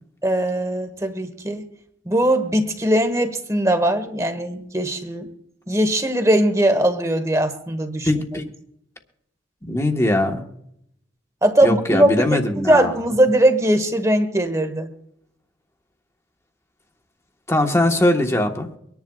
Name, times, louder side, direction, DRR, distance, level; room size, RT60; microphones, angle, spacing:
voice 1, 0.2-1.6 2.1-5.3 5.7-8.1 11.4-14.9, right 1 dB, 15° right, 9 dB, 1.3 m, -20 dB
voice 2, 8.0-8.5 9.6-10.4 11.6-12.9 17.5-18.7, left 1 dB, 15° left, 3 dB, 1.4 m, -20 dB
24.5 x 10.5 x 2.4 m, 0.74 s
head